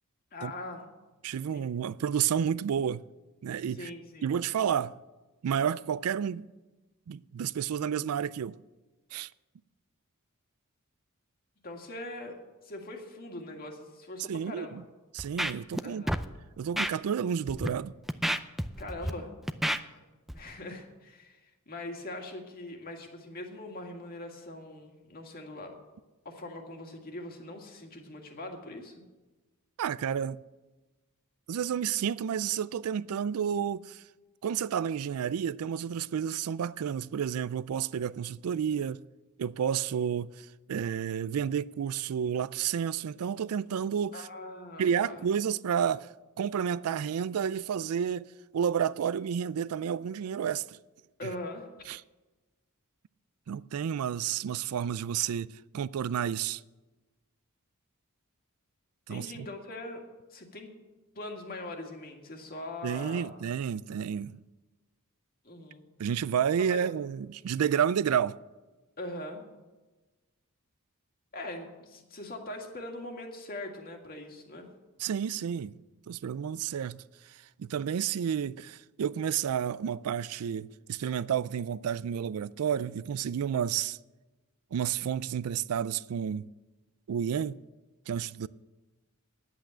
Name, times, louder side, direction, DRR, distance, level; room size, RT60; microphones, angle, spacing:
voice 1, 0.3-0.8 1.5-1.8 3.7-4.4 11.6-12.4 12.6-14.7 15.8-16.2 18.8-19.3 19.9-20.0 20.3-25.8 26.3-29.0 44.1-45.2 51.2-51.7 59.1-60.0 60.3-60.7 61.2-63.3 65.4-65.8 66.7-66.8 69.0-69.4 71.3-74.7, left 1 dB, 45° left, 1.9 m, -42 dB
voice 2, 1.2-3.0 3.4-3.9 4.2-5.0 5.4-6.5 7.1-8.6 9.1-9.3 14.3-14.8 15.1-16.0 16.6-17.9 29.8-30.4 31.5-34.0 34.4-39.0 39.4-44.3 44.8-46.1 46.4-48.3 48.5-50.8 51.2-51.3 51.9-52.0 53.5-55.5 55.7-56.6 59.1-59.5 62.8-64.4 66.0-68.4 75.0-75.7 76.1-84.0 84.7-86.5 87.1-87.6 88.1-88.5, right 8 dB, 75° right, 0.4 m, -30 dB
Scratching (performance technique), 15.2-15.8 16.1-16.2 16.8-16.9 17.5-17.7 18.1-19.1 19.5-19.8 20.3-20.4, equal, ahead, 0.4 m, -29 dB
10.0 x 8.3 x 8.9 m
head